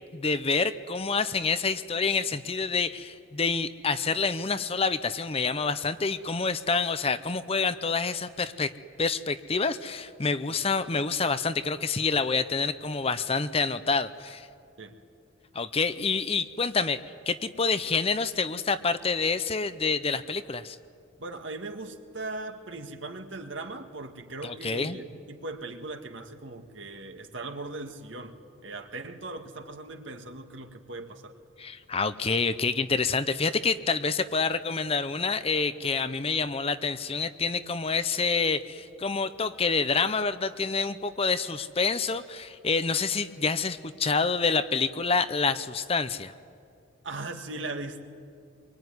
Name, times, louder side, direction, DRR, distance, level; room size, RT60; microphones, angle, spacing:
voice 1, 0.1-8.7 9.0-14.5 15.5-20.8 24.4-25.0 31.6-46.3, left 4 dB, 30° left, 12 dB, 0.7 m, -27 dB
voice 2, 21.2-31.3 47.0-48.0, right 2 dB, 70° right, 5 dB, 1.9 m, -39 dB
24.5 x 23.5 x 9.7 m, 2.4 s
head